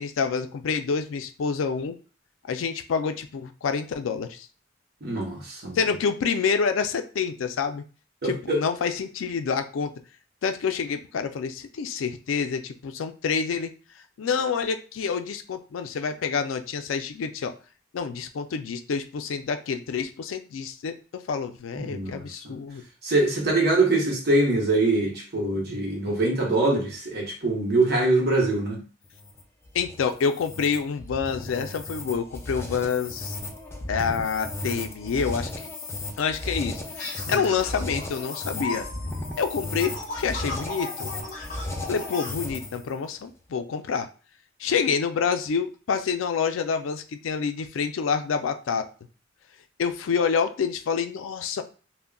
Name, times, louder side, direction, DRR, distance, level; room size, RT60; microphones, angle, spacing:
voice 1, 0.0-2.0 2.5-4.5 5.7-7.8 8.2-9.9 10.4-13.7 14.2-17.5 17.9-20.9 21.3-22.8 29.7-33.4 33.9-35.5 36.2-36.8 37.3-38.8 39.4-41.1 41.9-44.1 44.6-48.8 49.8-51.6, left 6 dB, 85° left, 8 dB, 0.4 m, -27 dB
voice 2, 5.0-5.8 8.2-8.6 21.8-22.5 23.0-28.8 37.3-37.5, right 2 dB, 55° right, 0 dB, 0.9 m, -24 dB
sound 1, 29.0-42.9, left 2 dB, 15° left, 0.4 m, -35 dB
sound 2, 37.0-42.3, left 2 dB, 40° left, 0.7 m, -37 dB
3.6 x 2.1 x 2.2 m, 0.36 s
head